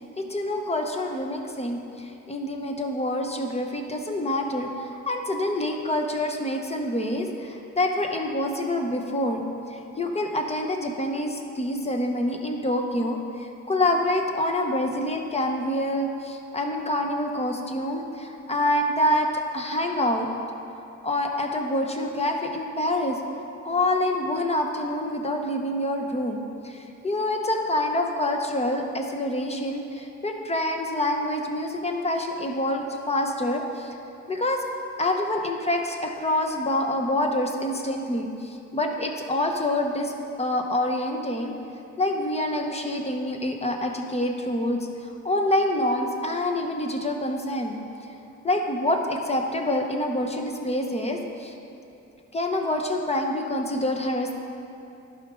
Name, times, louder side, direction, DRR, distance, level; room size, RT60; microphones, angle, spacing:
voice 1, 0.2-9.4 9.7-20.3 21.0-23.2 23.6-33.9 34.3-34.6 35.0-40.1 40.4-41.5 42.0-47.8 48.4-51.5 52.3-54.3, left 1 dB, 20° left, 3 dB, 0.9 m, -26 dB
11.5 x 5.1 x 3.7 m, 2.8 s
cardioid pair, 90°, 30 cm